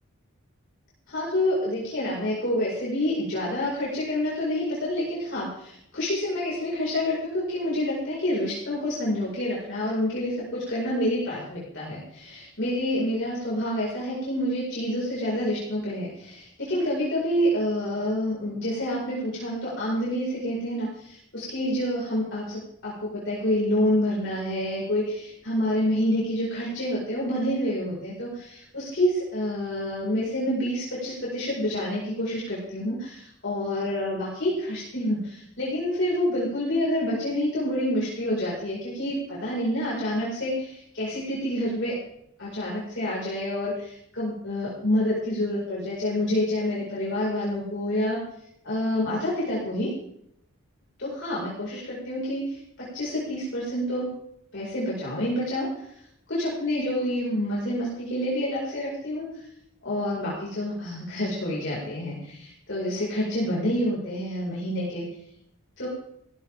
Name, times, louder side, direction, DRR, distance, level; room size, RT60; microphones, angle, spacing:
voice 1, 1.1-41.9 42.4-48.2 48.6-49.9 51.0-54.1 54.5-55.7 56.3-59.3 59.8-65.0 65.8-65.9, left 1 dB, 55° left, -6 dB, 5.0 m, -28 dB
16.0 x 15.0 x 3.6 m, 0.73 s
head